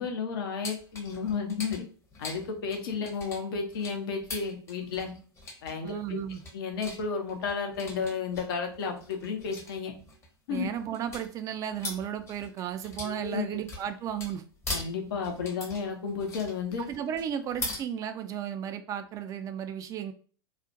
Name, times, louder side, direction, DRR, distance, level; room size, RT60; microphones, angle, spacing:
voice 1, 0.0-1.8 2.2-5.1 5.6-6.2 6.5-9.9 10.5-10.7 13.0-13.6 14.7-16.8, left 5 dB, 60° left, 4 dB, 0.7 m, -32 dB
sound 1, 0.6-17.8, left 2 dB, 20° left, 0.8 m, -42 dB
voice 2, 5.8-6.4 10.5-14.4 16.8-20.1, right 9 dB, 25° right, 9 dB, 0.3 m, -34 dB
2.4 x 2.1 x 2.6 m, 0.40 s
figure-of-eight pair, 95°, 13 cm